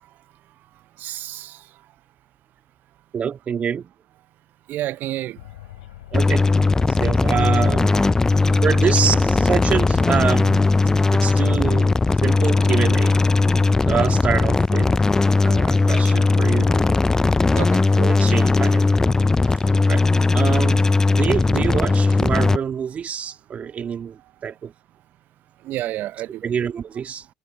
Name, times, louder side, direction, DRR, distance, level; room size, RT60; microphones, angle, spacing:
voice 1, 1.0-1.5 4.7-5.4 17.6-17.7 25.7-26.4, right 14 dB, 50° right, 0.6 m, -29 dB
voice 2, 3.1-3.9 6.1-6.4 6.7-8.0 8.6-10.6 11.1-11.9 12.2-13.1 13.9-14.9 15.4-16.9 17.9-19.1 19.9-20.0 20.3-20.8 21.1-24.7 26.4-27.2, right 7 dB, 35° right, 2.3 m, -26 dB
sound 1, 5.4-10.8, left 15 dB, 80° left, 5.9 m, -42 dB
sound 2, 6.1-22.6, left 3 dB, 15° left, 0.5 m, -18 dB
hypercardioid pair, 80°, 4 cm